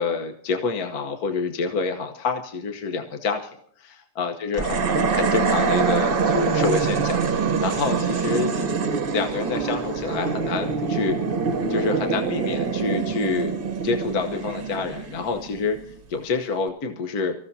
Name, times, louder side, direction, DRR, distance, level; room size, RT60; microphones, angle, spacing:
voice 1, 0.0-11.2 11.7-13.5 13.8-17.3, left 4 dB, 70° left, 4 dB, 1.6 m, -28 dB
sound 1, 4.5-15.9, right 5 dB, 40° right, 1.0 m, -24 dB
24.5 x 15.0 x 2.7 m, 0.63 s
omnidirectional pair, 1.7 m